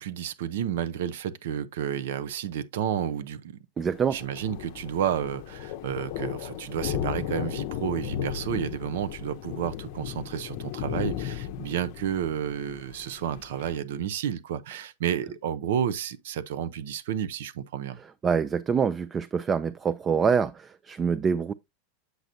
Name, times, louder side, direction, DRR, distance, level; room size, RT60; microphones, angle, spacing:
voice 1, 0.0-3.6 4.1-18.0, right 9 dB, 75° right, 0.6 m, -31 dB
Thunder, 3.8-13.8, left 10 dB, 60° left, 0.6 m, -35 dB
voice 2, 3.8-4.2 18.2-21.5, right 6 dB, 25° right, 0.4 m, -25 dB
7.9 x 6.1 x 2.6 m
hypercardioid pair, 105°, 0 cm